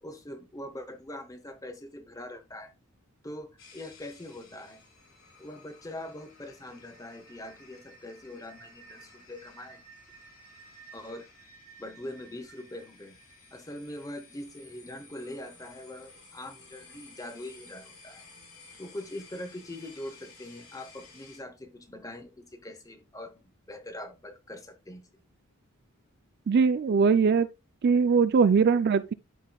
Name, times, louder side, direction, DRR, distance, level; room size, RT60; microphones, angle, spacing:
voice 1, 0.0-2.7 3.2-4.8 5.4-9.8 10.9-11.3 11.8-13.2 13.5-18.3 18.8-25.2, left 1 dB, 15° left, 0.8 m, -42 dB
sound 1, 3.6-21.4, left 1 dB, 75° left, 4.3 m, -54 dB
voice 2, 26.5-27.5 27.8-29.1, right 5 dB, 50° right, 0.3 m, -21 dB
12.5 x 4.2 x 2.3 m
head